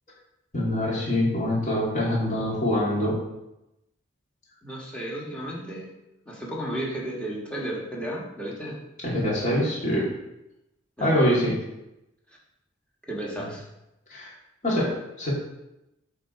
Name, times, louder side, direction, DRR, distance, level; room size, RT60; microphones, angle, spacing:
voice 1, 0.5-3.2 9.0-10.1 11.0-11.6 14.1-14.3 14.6-15.3, left 1 dB, 40° left, -6 dB, 2.6 m, -24 dB
voice 2, 4.6-5.9 6.2-8.8 11.0-11.1 12.3-12.4 13.1-13.6, right 1 dB, 5° left, -4 dB, 1.5 m, -33 dB
8.1 x 3.7 x 4.6 m, 0.90 s
head